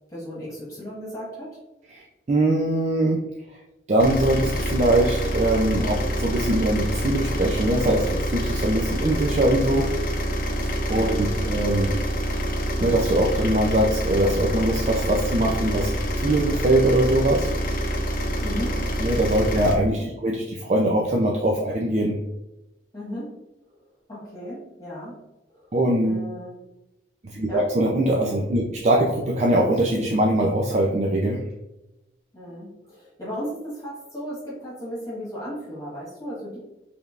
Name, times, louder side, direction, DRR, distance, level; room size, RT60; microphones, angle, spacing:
voice 1, 0.1-1.6 10.9-11.2 18.4-18.8 19.9-20.1 22.9-23.3 24.1-25.1 25.5-25.7 26.0-26.6 27.5-27.6 32.3-36.6, equal, 20° left, -7 dB, 1.5 m, -35 dB
voice 2, 1.9-3.2 3.9-9.9 10.9-11.9 12.8-17.5 19.0-22.2 25.7-26.3 27.2-31.4, right 1 dB, 40° right, -1 dB, 0.4 m, -22 dB
sound 1, 4.0-19.8, equal, 50° left, 0.6 m, -26 dB
5.0 x 3.4 x 2.4 m, 0.97 s
head